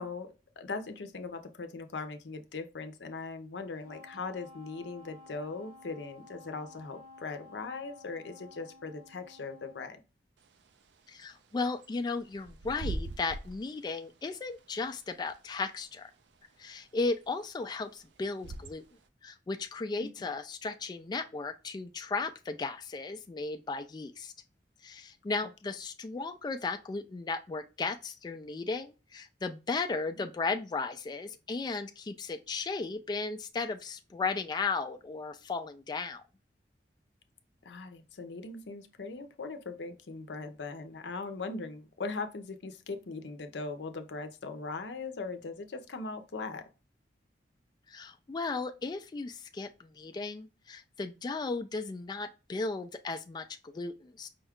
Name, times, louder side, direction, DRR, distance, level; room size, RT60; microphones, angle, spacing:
voice 1, 0.0-10.0 20.0-20.1 30.1-30.3 37.6-46.7, left 3 dB, 80° left, 0.6 m, -40 dB
Wind instrument woodwind instrument, 3.8-9.9, left 3 dB, 55° right, 0.8 m, -53 dB
Bird / Wind, 10.4-19.1, right 2 dB, 75° right, 0.5 m, -44 dB
voice 2, 11.1-16.1 16.6-18.8 19.2-24.3 24.8-36.2 47.9-54.3, left 3 dB, 25° left, 0.3 m, -35 dB
5.2 x 2.3 x 3.5 m
head